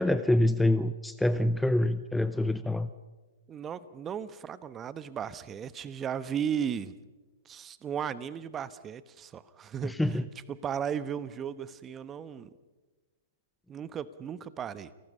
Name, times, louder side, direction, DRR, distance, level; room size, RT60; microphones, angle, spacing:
voice 1, 0.0-2.9 9.8-10.2, left 1 dB, 5° left, 13 dB, 0.7 m, -26 dB
voice 2, 3.5-6.9 7.4-10.0 10.5-12.5 13.7-14.9, right 8 dB, 20° right, 16 dB, 1.0 m, -35 dB
29.0 x 18.5 x 5.5 m, 1.3 s
figure-of-eight pair, 115°, 0 cm